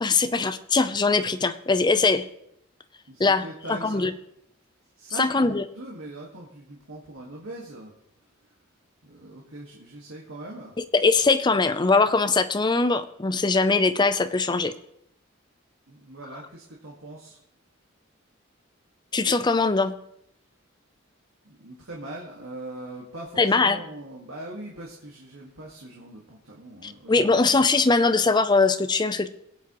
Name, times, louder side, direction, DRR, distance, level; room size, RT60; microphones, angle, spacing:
voice 1, 0.0-2.2 3.2-3.4 3.7-4.1 5.2-5.6 10.9-14.7 19.1-19.9 23.4-23.8 26.8-29.3, left 3 dB, 20° left, 11 dB, 0.5 m, -21 dB
voice 2, 3.1-4.1 5.0-7.9 9.0-10.8 15.9-17.4 21.4-27.4, right 1 dB, 85° right, -3 dB, 1.8 m, -41 dB
22.0 x 8.2 x 3.1 m, 0.76 s
head